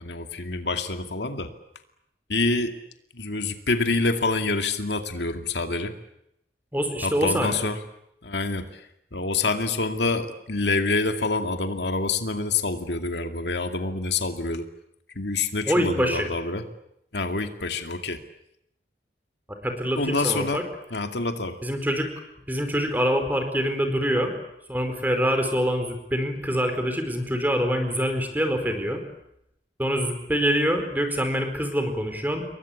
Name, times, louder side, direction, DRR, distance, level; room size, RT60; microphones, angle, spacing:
voice 1, 0.0-1.5 2.3-2.8 3.1-5.9 7.0-7.8 8.2-8.7 9.1-14.7 15.2-16.6 17.1-18.2 20.0-20.6 20.9-21.6, left 3 dB, 80° left, 6 dB, 2.4 m, -26 dB
voice 2, 6.7-7.6 15.6-16.3 19.6-20.6 21.6-22.1 22.5-24.3 24.7-29.0 29.8-32.5, equal, 10° right, 7 dB, 4.6 m, -25 dB
28.5 x 22.5 x 8.6 m, 0.78 s
head